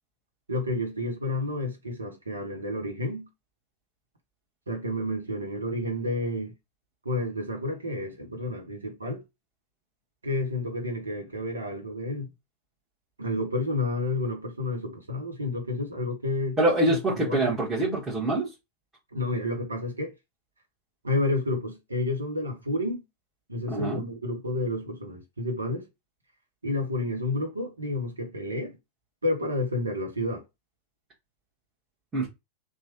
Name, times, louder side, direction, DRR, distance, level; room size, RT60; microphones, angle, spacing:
voice 1, 0.5-3.3 4.7-6.5 7.0-9.2 10.2-12.3 13.2-16.6 16.9-17.0 17.2-17.6 19.1-20.1 21.0-23.0 23.5-25.8 26.6-28.7 29.2-30.4, left 2 dB, 80° right, 0.9 m, -30 dB
voice 2, 16.6-18.5 23.7-24.0 32.1-32.3, right 2 dB, 15° right, 1.3 m, -25 dB
3.1 x 2.3 x 2.9 m
figure-of-eight pair, 90°, 0 cm